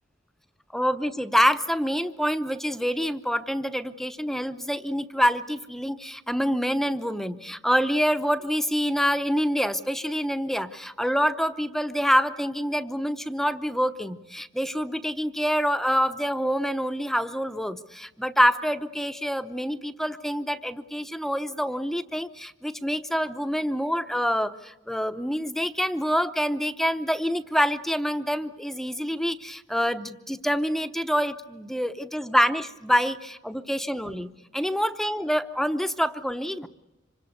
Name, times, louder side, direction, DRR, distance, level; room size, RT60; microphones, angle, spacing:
voice 1, 0.7-36.7, equal, ahead, 10 dB, 0.8 m, -26 dB
26.5 x 25.0 x 6.6 m, 0.98 s
head